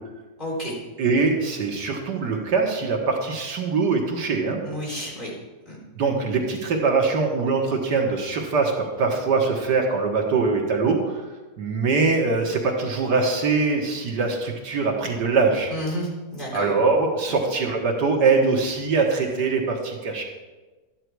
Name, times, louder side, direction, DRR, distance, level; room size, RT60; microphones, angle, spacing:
voice 1, 0.4-0.7 4.6-5.3 5.7-5.8 15.7-16.7, equal, 30° left, -5 dB, 3.9 m, -30 dB
voice 2, 1.0-4.6 6.0-11.2 11.6-15.7 16.5-20.2, right 4 dB, 75° right, 1 dB, 2.1 m, -22 dB
12.5 x 9.8 x 4.7 m, 1.2 s
omnidirectional pair, 1.8 m